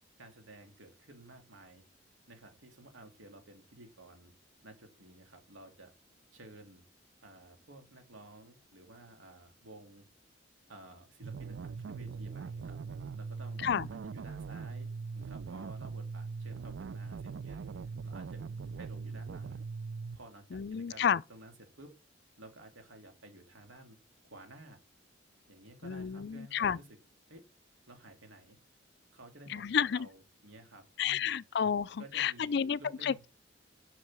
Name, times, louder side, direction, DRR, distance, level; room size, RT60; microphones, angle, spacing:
voice 1, 0.2-1.8 2.3-4.3 4.6-5.9 6.3-6.8 7.2-10.1 10.7-12.8 13.2-13.6 13.9-17.6 18.0-18.5 18.8-19.6 20.1-21.9 22.4-24.0 24.2-24.8 25.5-26.9 27.3-27.4 27.9-28.6 29.1-31.4 32.0-33.3, right 2 dB, 85° right, 2.6 m, -53 dB
sound 1, 11.2-20.2, right 5 dB, 65° right, 0.4 m, -41 dB
voice 2, 20.5-21.2 25.8-26.8 29.5-30.1 31.0-33.3, left 7 dB, 55° left, 0.4 m, -31 dB
7.8 x 6.3 x 7.3 m
head